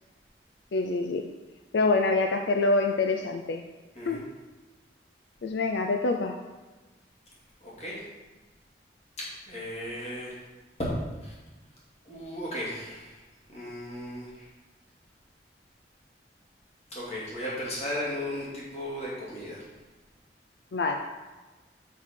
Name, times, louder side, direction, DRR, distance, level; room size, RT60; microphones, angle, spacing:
voice 1, 0.7-1.3 1.7-3.6 4.1-4.2 5.4-6.4 20.7-20.9, left 3 dB, 80° left, 4 dB, 0.5 m, -25 dB
voice 2, 7.6-8.0 9.2-10.4 10.8-10.9 11.2-11.3 12.0-13.2 13.5-14.4 16.9-19.6, left 1 dB, 35° left, -7 dB, 2.4 m, -35 dB
6.1 x 6.1 x 4.4 m, 1.2 s
head